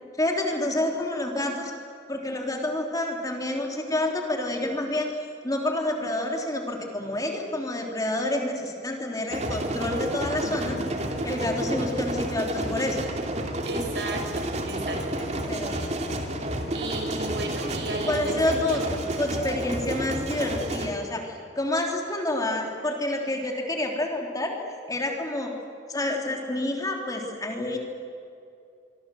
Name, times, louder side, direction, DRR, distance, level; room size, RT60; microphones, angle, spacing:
voice 1, 0.2-1.7 2.1-5.1 5.4-10.8 11.2-13.0 15.5-15.8 18.1-18.8 19.2-24.5 24.9-25.5 25.9-27.8, left 1 dB, 20° left, 1 dB, 3.4 m, -28 dB
sound 1, 9.3-20.9, right 1 dB, 40° right, 2.9 m, -30 dB
voice 2, 10.4-10.9 13.6-15.9 16.7-18.8, right 2 dB, 70° right, 3 dB, 6.0 m, -35 dB
25.5 x 24.0 x 7.8 m, 2.5 s
head